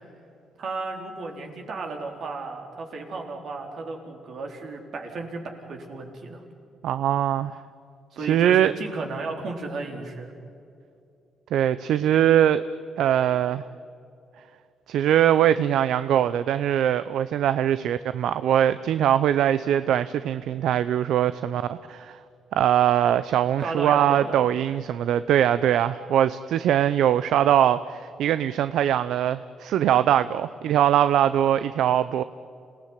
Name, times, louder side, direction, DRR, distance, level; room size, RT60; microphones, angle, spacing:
voice 1, 0.6-6.4 8.1-10.3 23.6-24.4, right 3 dB, 60° right, 2 dB, 4.2 m, -34 dB
voice 2, 6.8-7.5 8.2-8.7 11.5-12.6 13.0-13.6 14.9-22.2 22.5-32.2, right 10 dB, 80° right, 14 dB, 0.6 m, -22 dB
27.5 x 18.0 x 9.8 m, 2.6 s
cardioid pair, 90°, 0 cm